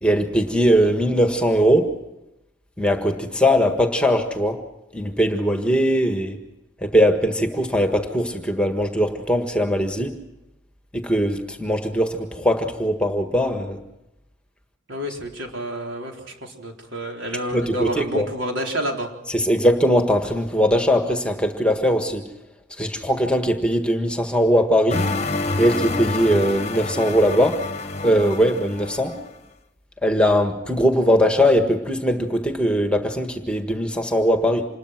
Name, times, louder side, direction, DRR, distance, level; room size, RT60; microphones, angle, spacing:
voice 1, 0.0-1.9 2.8-4.6 4.9-6.4 6.8-10.1 10.9-13.8 17.5-18.3 19.3-22.2 22.8-25.1 25.6-27.6 28.0-29.2 30.0-34.7, equal, 5° left, 5 dB, 1.6 m, -20 dB
voice 2, 14.9-19.1, equal, 70° right, 1 dB, 4.2 m, -29 dB
sound 1, 24.9-29.3, left 3 dB, 30° left, 1.1 m, -28 dB
27.0 x 21.0 x 6.1 m, 0.92 s
head